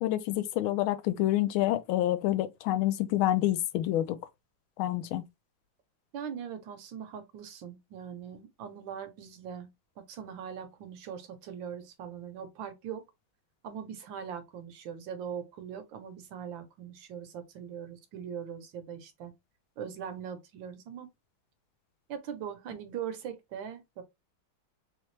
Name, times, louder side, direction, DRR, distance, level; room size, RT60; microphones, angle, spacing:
voice 1, 0.0-4.2 4.8-5.2, left 14 dB, 85° left, 1.4 m, -28 dB
voice 2, 6.1-9.7 10.0-13.0 13.6-19.3 19.8-21.1 22.1-24.0, right 8 dB, 75° right, 1.4 m, -41 dB
3.4 x 3.2 x 3.1 m
omnidirectional pair, 2.2 m